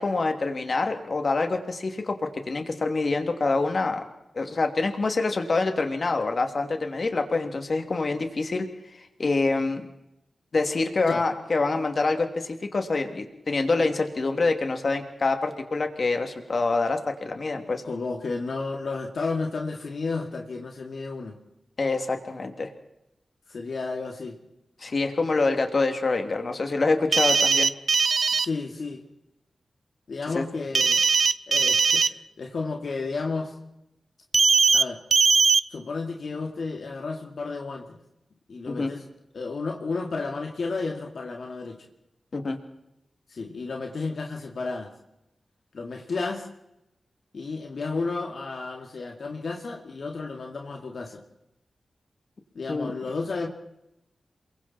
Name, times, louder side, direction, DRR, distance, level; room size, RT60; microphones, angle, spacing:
voice 1, 0.0-4.0 4.3-8.7 8.9-9.9 10.5-17.8 21.8-22.7 24.8-27.7 30.3-30.4 38.7-38.9 42.3-42.6 52.7-52.9, left 3 dB, 55° left, 5 dB, 2.9 m, -26 dB
voice 2, 17.8-21.4 23.5-24.4 28.4-29.0 30.1-31.1 31.5-33.5 34.7-35.0 35.7-38.0 38.5-39.0 39.3-41.8 43.3-44.9 45.7-46.5 47.3-51.2 52.5-53.5, left 3 dB, 70° left, 2 dB, 2.5 m, -32 dB
sound 1, 27.1-28.5 30.7-32.1 34.3-34.8 35.1-35.6, right 4 dB, 60° right, 0.7 m, -20 dB
28.5 x 23.0 x 4.4 m, 0.87 s
wide cardioid pair, 80°, 0 cm